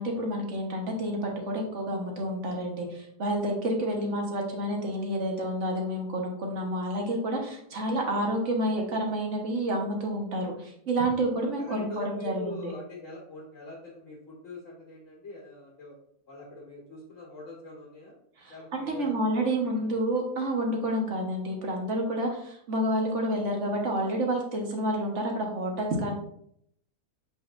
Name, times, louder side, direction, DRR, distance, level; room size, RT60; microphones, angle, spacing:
voice 1, 0.0-12.6 18.4-26.1, right 1 dB, 50° right, 0 dB, 1.6 m, -29 dB
voice 2, 3.7-4.1 11.4-16.0 16.3-18.1 18.5-19.9, left 2 dB, 50° left, -4 dB, 2.1 m, -43 dB
7.8 x 5.2 x 2.6 m, 0.70 s
omnidirectional pair, 1.7 m